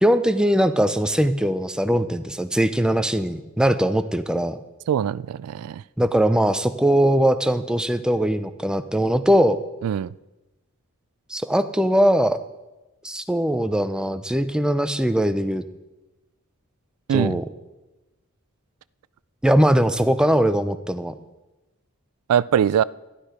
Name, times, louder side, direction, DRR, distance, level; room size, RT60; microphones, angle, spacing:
voice 1, 0.0-4.6 6.0-9.6 11.3-12.4 13.0-15.6 17.1-17.4 19.4-21.2, equal, 5° right, 0.5 m, -20 dB
voice 2, 4.9-5.8 9.8-10.1 17.1-17.4 22.3-22.8, right 9 dB, 85° right, 0.3 m, -22 dB
12.0 x 11.5 x 5.0 m
head